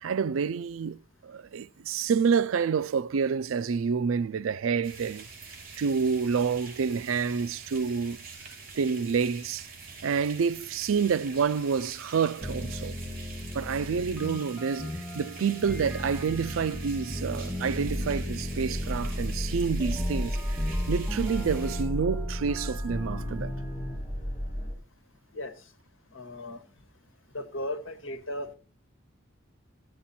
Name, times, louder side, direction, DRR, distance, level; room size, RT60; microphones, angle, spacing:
voice 1, 0.0-5.3 5.8-8.2 8.7-9.7 10.0-13.0 13.5-23.6, right 6 dB, 85° right, 0.4 m, -28 dB
sound 1, 4.8-21.8, right 4 dB, 45° right, 5.7 m, -46 dB
sound 2, 12.4-24.0, left 1 dB, 5° left, 1.5 m, -37 dB
sound 3, 17.9-24.7, equal, 35° left, 7.2 m, -33 dB
voice 2, 26.1-26.6 27.3-28.5, left 1 dB, 75° left, 1.5 m, -36 dB
13.5 x 7.6 x 4.3 m
head